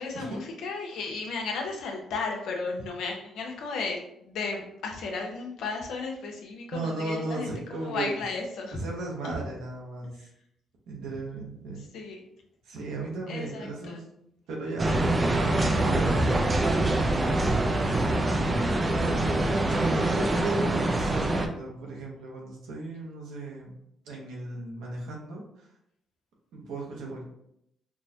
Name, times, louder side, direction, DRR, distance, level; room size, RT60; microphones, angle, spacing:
voice 1, 0.0-8.8 9.2-9.4 10.2-10.3 11.9-12.2 13.3-14.0, left 4 dB, 80° left, 1 dB, 0.7 m, -34 dB
voice 2, 6.7-8.2 8.7-10.3 10.9-11.9 12.6-14.1 14.5-15.0 15.8-18.4 19.0-23.8 24.0-25.7 26.5-27.2, right 2 dB, 85° right, -2 dB, 1.0 m, -36 dB
sound 1, 14.8-21.5, right 2 dB, 30° right, 0.5 m, -25 dB
4.5 x 2.1 x 2.7 m, 0.75 s
supercardioid pair, 70°, 0 cm